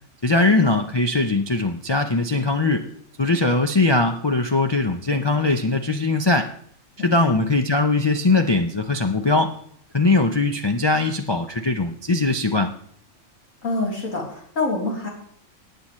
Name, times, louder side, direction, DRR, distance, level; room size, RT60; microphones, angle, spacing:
voice 1, 0.2-2.9 3.2-6.5 7.0-9.5 9.9-12.7, left 2 dB, 35° left, 6 dB, 0.4 m, -20 dB
voice 2, 7.0-7.3 13.6-15.1, left 3 dB, 75° left, -2 dB, 3.7 m, -27 dB
19.0 x 8.6 x 3.1 m, 0.62 s
omnidirectional pair, 1.4 m